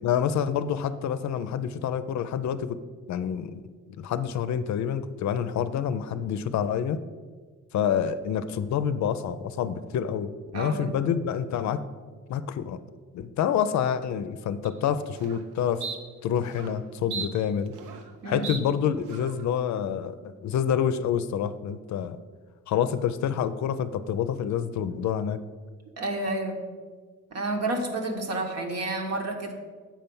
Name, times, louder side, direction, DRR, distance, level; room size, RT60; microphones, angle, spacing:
voice 1, 0.0-2.8 3.1-3.5 3.9-7.0 7.7-11.8 12.3-12.8 13.1-15.8 16.2-17.7 18.2-20.1 20.4-22.2 22.7-25.4, left 8 dB, 65° left, 12 dB, 0.5 m, -27 dB
voice 2, 10.5-10.9 18.2-18.5 26.0-26.6 27.3-29.5, right 2 dB, 60° right, 3 dB, 1.2 m, -30 dB
sound 1, 14.7-14.8 15.2-15.4 15.8-16.0 16.5-16.7 17.1-18.1 18.4-18.6 19.1-19.4, right 5 dB, 85° right, 0.7 m, -36 dB
7.4 x 4.4 x 5.4 m, 1.5 s
cardioid pair, 90°, 30 cm